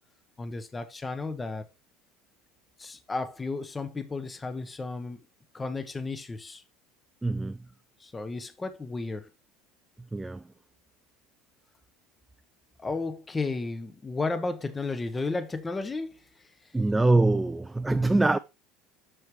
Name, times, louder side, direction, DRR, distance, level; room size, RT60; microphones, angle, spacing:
voice 1, 0.4-1.6 2.8-5.2 5.5-6.6 8.0-9.3 12.8-16.2, left 3 dB, 15° left, 0.9 m, -33 dB
voice 2, 7.2-7.6 10.1-10.4 16.7-18.4, right 2 dB, 10° right, 0.3 m, -24 dB
7.8 x 5.8 x 3.0 m
supercardioid pair, 110°, 0 cm